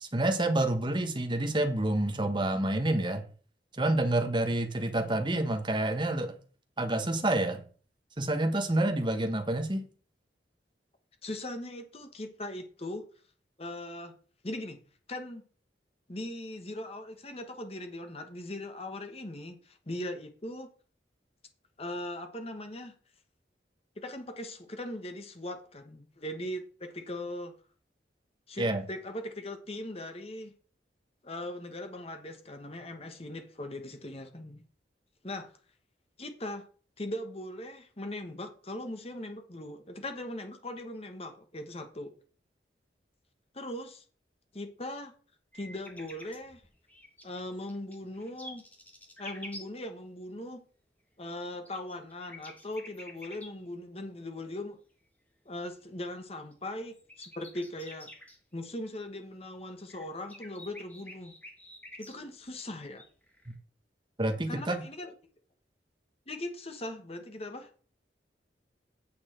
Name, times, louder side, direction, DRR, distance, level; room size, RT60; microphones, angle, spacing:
voice 1, 0.0-3.2 3.7-6.3 6.8-7.6 8.2-9.8 28.6-28.8 64.2-64.8, right 1 dB, 25° right, 1.2 m, -28 dB
voice 2, 11.2-13.1 13.6-14.1 14.4-14.8 15.1-15.4 16.1-20.7 21.8-22.9 24.0-27.6 28.5-30.5 31.2-34.6 35.2-35.5 36.2-36.6 37.0-42.1 43.5-44.0 44.5-45.1 45.5-46.6 47.2-48.6 49.2-50.6 51.2-54.8 55.4-58.1 58.5-61.3 62.0-63.0 64.5-65.1 66.3-67.7, left 1 dB, 35° left, 1.3 m, -39 dB
sound 1, 45.5-49.7 51.3-53.5 56.5-56.6 56.9-58.4 59.8-62.5 63.0-63.5, left 1 dB, 10° left, 1.6 m, -48 dB
8.8 x 7.3 x 4.4 m
head